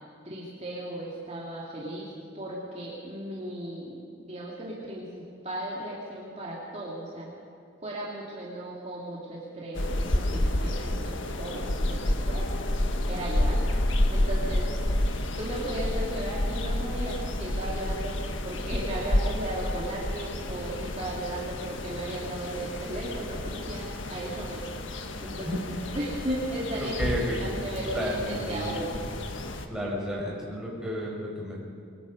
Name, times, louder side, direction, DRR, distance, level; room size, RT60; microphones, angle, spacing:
voice 1, 0.2-4.0 4.2-7.3 7.8-12.5 13.1-13.6 14.1-14.7 15.4-18.1 18.4-24.6 25.2-25.6 25.9-26.9 27.4-29.0, right 1 dB, 30° right, -5 dB, 2.8 m, -36 dB
sound 1, 9.8-29.7, left 1 dB, 75° left, 1.5 m, -30 dB
voice 2, 26.8-27.5 27.9-28.8 29.7-31.6, equal, 5° right, -5 dB, 5.0 m, -32 dB
24.5 x 21.0 x 5.4 m, 2.4 s
head